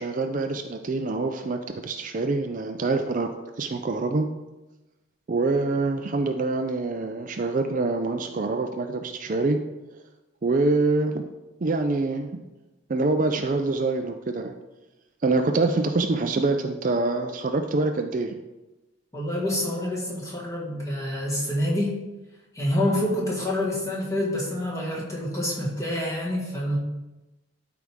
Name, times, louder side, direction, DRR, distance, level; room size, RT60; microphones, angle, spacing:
voice 1, 0.0-3.3 3.6-4.3 5.3-9.6 10.4-11.3 11.6-12.4 12.9-14.5 15.2-18.3, right 3 dB, 40° right, 6 dB, 0.4 m, -25 dB
voice 2, 19.1-22.0 22.5-26.8, left 1 dB, 15° left, -4 dB, 1.9 m, -27 dB
12.0 x 4.7 x 3.6 m, 1.1 s
head